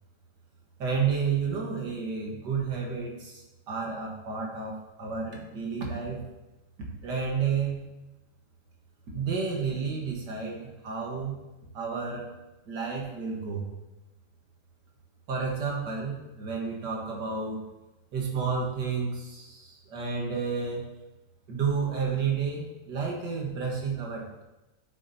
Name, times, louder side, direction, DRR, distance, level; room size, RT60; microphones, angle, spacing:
voice 1, 0.8-3.4 3.7-6.2 7.0-7.8 9.1-11.4 11.7-12.3 12.7-13.7 15.3-17.6 18.1-20.8 21.5-24.4, right 5 dB, 80° right, -1 dB, 2.1 m, -31 dB
9.3 x 7.5 x 2.8 m, 1.0 s
omnidirectional pair, 1.8 m